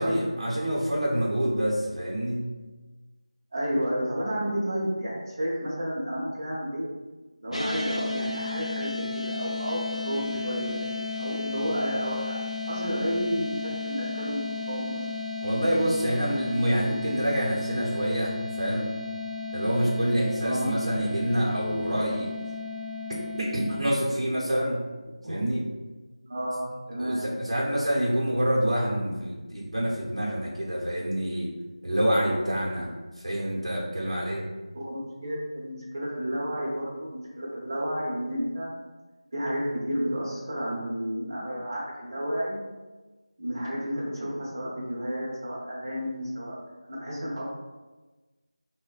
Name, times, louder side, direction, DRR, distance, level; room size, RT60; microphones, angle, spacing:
voice 1, 0.0-2.5 15.4-18.9 19.5-22.3 23.4-24.8 25.3-25.6 27.0-31.5 31.8-32.9 33.2-34.4, equal, 70° right, -6 dB, 0.8 m, -27 dB
voice 2, 3.5-6.9 7.4-10.8 11.1-12.4 12.7-15.0 20.4-20.8 25.2-25.4 26.3-27.2 34.7-38.7 39.3-42.6 43.4-46.5 46.9-47.4, equal, 35° right, -5 dB, 0.6 m, -31 dB
sound 1, 7.5-23.8, left 4 dB, 80° left, 0.5 m, -34 dB
3.0 x 2.1 x 2.4 m, 1.2 s
figure-of-eight pair, 170°, 3 cm